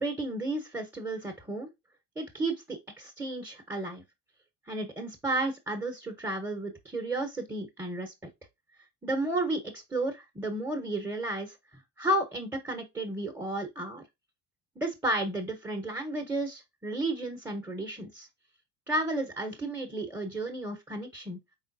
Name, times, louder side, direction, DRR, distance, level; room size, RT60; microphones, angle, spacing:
voice 1, 0.0-1.7 2.2-4.0 4.7-8.1 9.0-14.0 14.8-18.3 18.9-21.4, right 2 dB, 5° right, 1.1 m, -33 dB
4.8 x 3.6 x 2.7 m
supercardioid pair, 90°, 43 cm